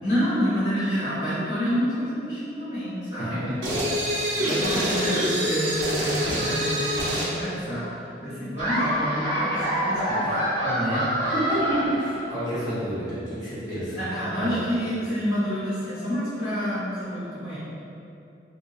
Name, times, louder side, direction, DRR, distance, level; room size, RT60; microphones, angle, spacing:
voice 1, 0.0-3.6 4.3-7.9 8.2-10.3 14.0-17.6, equal, 50° left, -11 dB, 1.2 m, -28 dB
sound 1, 3.6-7.4, equal, 80° right, 0.6 m, -25 dB
Laughter, 8.6-12.6, equal, 40° right, 1.3 m, -26 dB
voice 2, 10.6-14.0 14.4-14.6, right 1 dB, 25° left, -14 dB, 1.4 m, -29 dB
3.2 x 2.7 x 2.8 m, 2.7 s
head